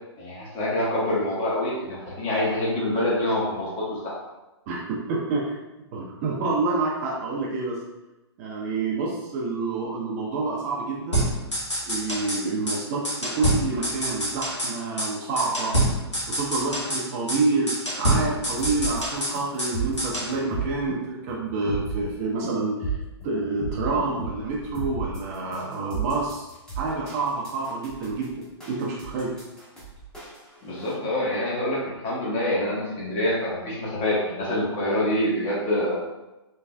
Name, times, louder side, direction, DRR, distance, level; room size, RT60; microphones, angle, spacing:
voice 1, 0.2-4.1 30.6-36.0, left 1 dB, 30° left, -6 dB, 1.3 m, -26 dB
voice 2, 4.7-5.6 5.9-7.8 8.4-11.3 11.9-15.7 16.3-23.0 23.2-26.5 26.8-29.3, right 3 dB, 35° right, -2 dB, 0.6 m, -28 dB
sound 1, 11.1-12.4 12.7-12.8 13.0-14.7 15.0-15.1 15.4-17.0 17.3-17.4 17.7-19.7 20.0-20.3, right 1 dB, 90° left, 1.4 m, -26 dB
sound 2, 18.6-30.9, right 3 dB, 5° left, 1.0 m, -34 dB
3.6 x 3.1 x 2.2 m, 1.0 s
figure-of-eight pair, 115°, 15 cm